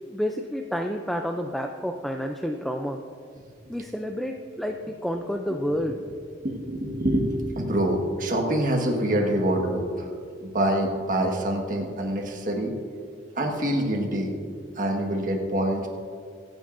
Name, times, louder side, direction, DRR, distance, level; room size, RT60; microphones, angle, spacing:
voice 1, 0.1-3.0 3.7-6.0, equal, ahead, 3 dB, 0.4 m, -29 dB
voice 2, 6.4-10.1 10.4-12.7 13.3-14.3 14.7-15.9, right 1 dB, 45° right, 2 dB, 1.5 m, -26 dB
25.0 x 9.0 x 2.6 m, 2.2 s
head